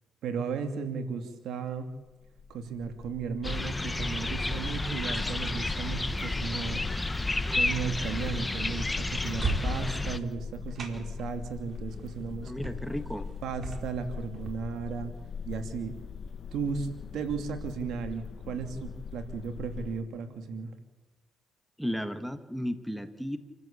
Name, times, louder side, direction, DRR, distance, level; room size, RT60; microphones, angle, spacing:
voice 1, 0.2-1.9 2.5-6.8 7.5-12.5 13.4-15.1 15.5-16.0 16.5-20.7, right 5 dB, 75° right, 7 dB, 2.7 m, -35 dB
sound 1, 2.1-20.0, left 6 dB, 60° left, 1.4 m, -41 dB
sound 2, 3.4-10.2, left 2 dB, 15° left, 1.2 m, -31 dB
sound 3, 4.5-14.5, right 3 dB, 50° right, 4.3 m, -41 dB
voice 2, 12.4-13.3 21.8-23.4, equal, ahead, 9 dB, 1.8 m, -34 dB
28.5 x 13.5 x 8.7 m, 1.2 s
cardioid pair, 90°, 0 cm